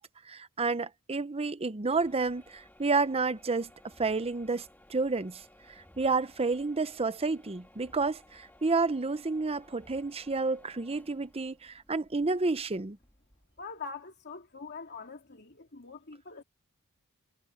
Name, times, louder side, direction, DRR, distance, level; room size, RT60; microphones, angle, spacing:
voice 1, 0.3-3.7 4.0-4.6 4.9-5.4 6.0-13.0, right 3 dB, 25° right, 0.7 m, -30 dB
sound 1, 1.8-13.7, left 1 dB, 10° left, 3.1 m, -59 dB
voice 2, 13.6-16.4, left 5 dB, 50° left, 2.7 m, -43 dB
head